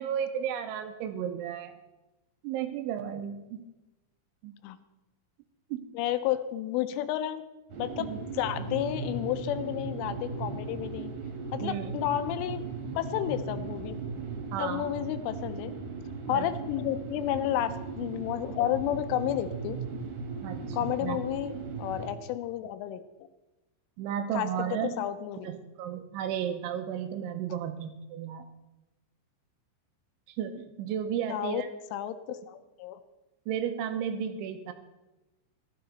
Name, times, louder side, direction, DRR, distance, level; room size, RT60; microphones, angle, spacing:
voice 1, 0.0-1.7 2.4-3.6 4.4-4.6 5.7-5.8 8.0-8.2 11.6-11.9 14.5-15.0 16.3-16.5 20.4-21.2 24.0-25.0 25.4-28.5 30.4-31.7 32.3-32.4 33.5-34.7, right 9 dB, 80° right, 8 dB, 3.0 m, -33 dB
voice 2, 5.9-7.4 7.8-8.1 8.3-11.1 11.5-12.6 13.0-14.0 14.6-15.7 16.3-19.8 20.7-23.0 24.3-25.5 31.3-31.6 31.9-33.0, left 12 dB, 85° left, 11 dB, 3.1 m, -31 dB
sound 1, 7.7-22.1, right 4 dB, 55° right, 3.0 m, -37 dB
13.5 x 12.0 x 4.0 m, 1.0 s
omnidirectional pair, 5.7 m